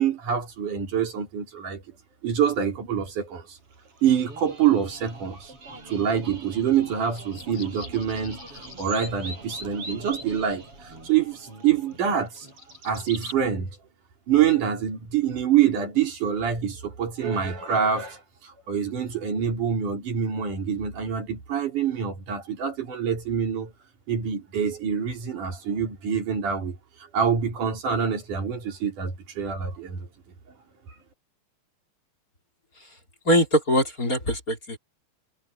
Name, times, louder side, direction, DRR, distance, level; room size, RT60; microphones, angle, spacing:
voice 1, 0.0-1.8 2.2-3.6 4.0-5.5 5.8-12.5 12.8-13.7 14.3-23.7 24.1-26.8 27.1-30.1, right 8 dB, 55° right, 5.0 m, -26 dB
sound 1, 3.7-13.4, right 2 dB, 35° right, 8.3 m, -42 dB
voice 2, 33.2-34.8, equal, 20° left, 4.3 m, -23 dB
omnidirectional pair, 4.3 m